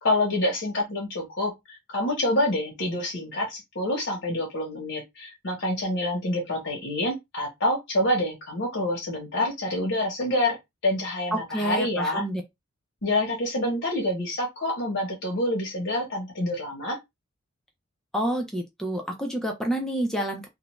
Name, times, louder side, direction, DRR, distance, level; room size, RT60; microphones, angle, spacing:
voice 1, 0.0-10.6 10.8-12.2 13.0-17.0, left 1 dB, 60° left, 0.9 m, -27 dB
voice 2, 11.3-12.4 18.1-20.5, right 1 dB, 5° left, 0.4 m, -28 dB
2.4 x 2.1 x 3.0 m
head